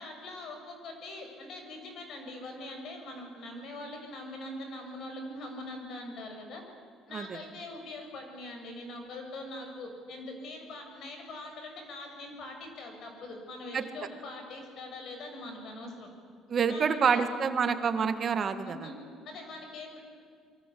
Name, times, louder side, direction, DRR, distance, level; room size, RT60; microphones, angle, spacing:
voice 1, 0.0-6.6 7.1-16.1 16.7-17.2 18.6-18.9 19.3-20.0, left 2 dB, 45° left, 4 dB, 6.8 m, -42 dB
voice 2, 16.5-18.8, right 6 dB, 30° right, 9 dB, 1.8 m, -27 dB
28.5 x 23.5 x 8.5 m, 2.2 s
cardioid pair, 170°, 0 cm